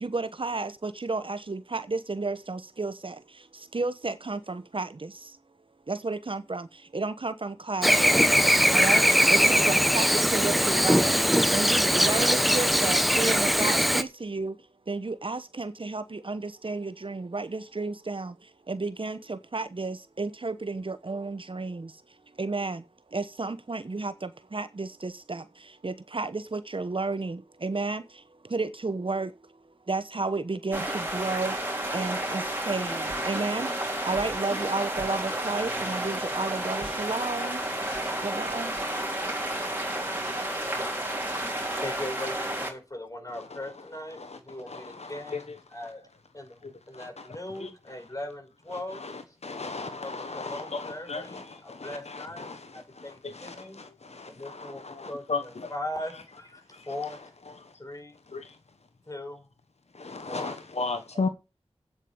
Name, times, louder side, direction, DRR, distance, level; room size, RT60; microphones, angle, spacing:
voice 1, 0.0-3.1 3.7-4.9 5.9-6.6 6.9-7.9 8.7-9.0 9.3-11.1 11.5-14.5 14.9-18.3 18.7-21.8 22.4-22.8 23.1-24.1 24.5-25.4 25.8-27.4 27.6-28.0 28.5-29.3 29.9-30.8 31.1-31.5 31.9-33.7 34.1-37.6 38.2-38.7, right 3 dB, 50° right, 1.0 m, -32 dB
Chirp tweet / Buzz, 7.8-14.0, equal, ahead, 1.0 m, -21 dB
sound 1, 30.7-42.7, right 1 dB, 15° right, 4.0 m, -31 dB
voice 2, 41.8-46.0 46.3-49.4 49.8-53.8 54.2-57.2 57.8-58.1 59.1-59.5 60.2-60.6, left 1 dB, 30° left, 4.7 m, -40 dB
voice 3, 44.7-45.4 46.9-47.1 47.6-47.7 49.0-49.1 49.4-51.4 51.7-52.6 53.2-55.7 56.7-56.8 58.3-58.5 59.9-61.3, left 3 dB, 70° left, 1.2 m, -35 dB
8.7 x 7.9 x 6.9 m
wide cardioid pair, 55°, 11 cm